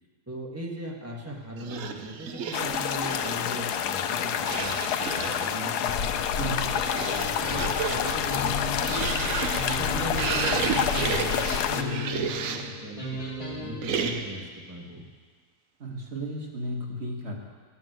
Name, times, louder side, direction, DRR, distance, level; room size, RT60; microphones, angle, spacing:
voice 1, 0.3-4.8 5.1-9.0 9.2-9.4 9.8-13.2 13.6-15.1, equal, 10° right, -2 dB, 1.0 m, -39 dB
sound 1, 1.6-3.5 4.4-5.6 6.3-12.8 13.8-14.5, right 6 dB, 65° right, 1.0 m, -32 dB
sound 2, 2.5-11.8, left 8 dB, 75° left, 1.1 m, -28 dB
voice 2, 6.4-6.7 10.1-10.2 12.6-12.7 15.8-17.4, right 1 dB, 45° right, -1 dB, 1.5 m, -34 dB
sound 3, 7.0-13.8, left 2 dB, 20° left, 2.1 m, -37 dB
9.7 x 7.4 x 7.7 m, 1.5 s
omnidirectional pair, 1.8 m